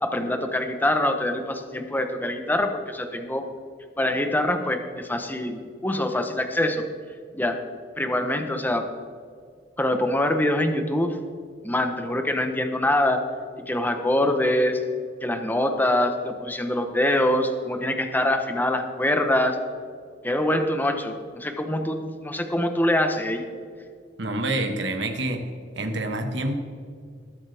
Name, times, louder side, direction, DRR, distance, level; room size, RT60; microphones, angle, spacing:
voice 1, 0.0-3.5 4.0-6.9 7.3-7.6 8.0-8.9 9.8-11.2 11.6-13.2 13.7-14.8 15.2-19.6 20.2-23.4, left 1 dB, 10° left, 6 dB, 0.9 m, -24 dB
voice 2, 24.2-25.4 25.8-26.5, right 2 dB, 70° right, 5 dB, 1.5 m, -27 dB
20.5 x 8.1 x 3.5 m, 2.1 s
head